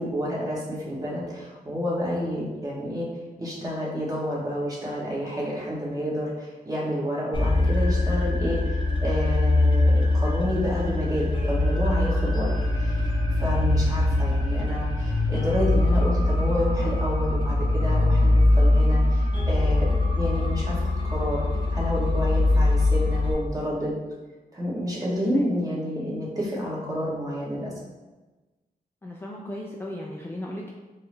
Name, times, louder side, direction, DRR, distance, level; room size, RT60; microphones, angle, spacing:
voice 1, 0.0-3.1 3.4-12.5 12.8-13.1 13.4-21.4 21.7-23.9 24.5-27.7, equal, 20° right, -5 dB, 1.2 m, -29 dB
sound 1, 7.3-23.3, left 2 dB, 30° left, 0.8 m, -22 dB
voice 2, 29.0-30.7, left 1 dB, 15° left, -2 dB, 0.4 m, -36 dB
4.3 x 2.0 x 3.2 m, 1.2 s
cardioid pair, 75°, 16 cm